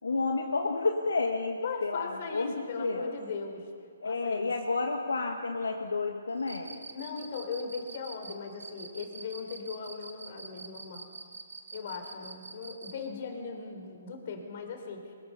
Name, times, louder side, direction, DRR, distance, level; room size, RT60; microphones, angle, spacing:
voice 1, 0.0-3.2 4.0-6.8, left 3 dB, 75° left, 3 dB, 1.5 m, -31 dB
voice 2, 1.6-3.7 4.0-4.5 6.9-11.1 11.7-15.1, left 5 dB, 45° left, 5 dB, 3.6 m, -39 dB
Cricket, 6.4-13.0, right 4 dB, 70° right, 2.0 m, -45 dB
23.0 x 22.0 x 5.6 m, 2.4 s
figure-of-eight pair, 135°, 0 cm